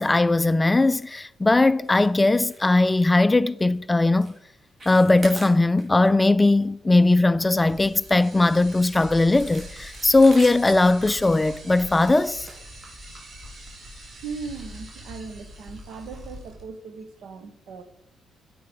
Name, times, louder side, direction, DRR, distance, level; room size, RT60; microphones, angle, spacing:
voice 1, 0.0-4.3 4.9-12.5, left 2 dB, 15° left, 0.4 m, -19 dB
sound 1, 1.8-2.1 2.4-2.7 3.0-3.1 3.6-3.8 4.1-4.4 4.6-6.1 6.4-6.6 7.0-8.1 8.7-13.3 14.0-14.2 14.5-14.6 15.1-15.2, right 2 dB, 30° right, 4.1 m, -43 dB
sound 2, 7.5-16.6, equal, 50° right, 4.0 m, -43 dB
voice 2, 14.2-17.8, right 5 dB, 75° right, 1.3 m, -38 dB
9.3 x 7.7 x 5.2 m
cardioid pair, 90°, 0 cm